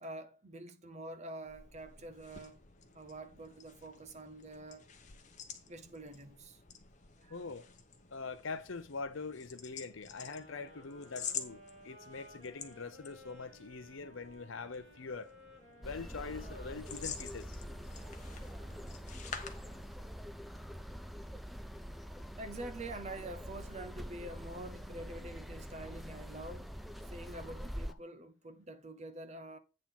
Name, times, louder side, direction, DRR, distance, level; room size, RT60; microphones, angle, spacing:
voice 1, 0.0-2.6 2.9-4.9 5.7-6.6 7.2-7.4 19.5-19.8 22.4-26.7 27.1-29.6, right 2 dB, 30° right, 0.7 m, -46 dB
sound 1, 1.4-20.3, left 7 dB, 35° left, 1.0 m, -49 dB
voice 2, 7.3-7.7 8.1-15.3 15.8-17.6, left 4 dB, 65° left, 0.7 m, -43 dB
sound 2, 10.2-19.4, equal, 60° right, 4.6 m, -58 dB
sound 3, 15.8-27.9, equal, ahead, 0.3 m, -45 dB
8.6 x 3.9 x 5.8 m
head